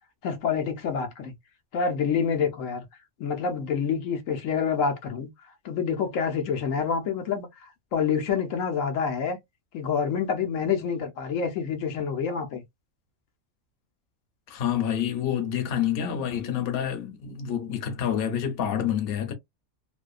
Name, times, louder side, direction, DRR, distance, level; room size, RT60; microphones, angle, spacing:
voice 1, 0.2-1.3 1.7-2.9 3.2-5.3 5.6-9.4 9.7-12.6, left 6 dB, 85° left, 1.1 m, -27 dB
voice 2, 14.5-19.3, left 9 dB, 55° left, 0.8 m, -28 dB
2.7 x 2.2 x 2.3 m
omnidirectional pair, 1.3 m